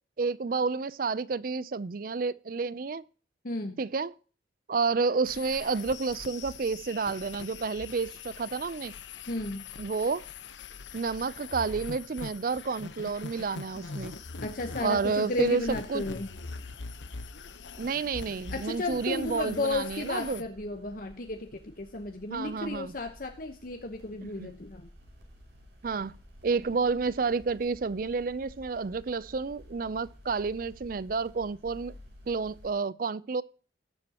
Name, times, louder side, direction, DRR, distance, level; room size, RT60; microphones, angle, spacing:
voice 1, 0.2-3.0 3.8-4.1 4.7-8.9 9.8-10.2 10.9-14.2 14.8-16.0 17.8-20.4 22.3-22.9 24.4-24.5 25.8-26.1 26.4-31.9 32.3-33.4, right 4 dB, 50° right, 0.4 m, -30 dB
voice 2, 3.4-3.8 9.3-9.6 14.4-16.3 18.5-24.9, left 2 dB, 50° left, 1.0 m, -34 dB
sound 1, 5.2-20.4, left 4 dB, 80° left, 0.9 m, -43 dB
sound 2, 15.8-32.7, equal, 75° right, 5.3 m, -53 dB
19.0 x 7.5 x 2.9 m
head